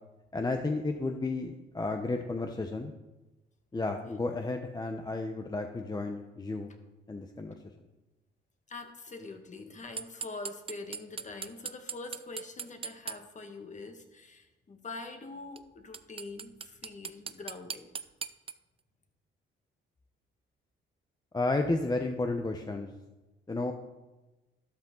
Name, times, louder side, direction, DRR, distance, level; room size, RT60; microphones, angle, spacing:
voice 1, 0.3-2.9 3.7-6.7 7.1-7.5 21.3-22.9 23.5-23.7, left 2 dB, 20° left, 4 dB, 1.0 m, -32 dB
voice 2, 8.7-17.9, left 3 dB, 35° left, 5 dB, 2.0 m, -44 dB
sound 1, 10.0-13.2 15.6-15.7 15.9-18.5, right 6 dB, 30° right, 0.5 m, -38 dB
13.0 x 12.0 x 3.9 m, 1.1 s
cardioid pair, 90°, 20 cm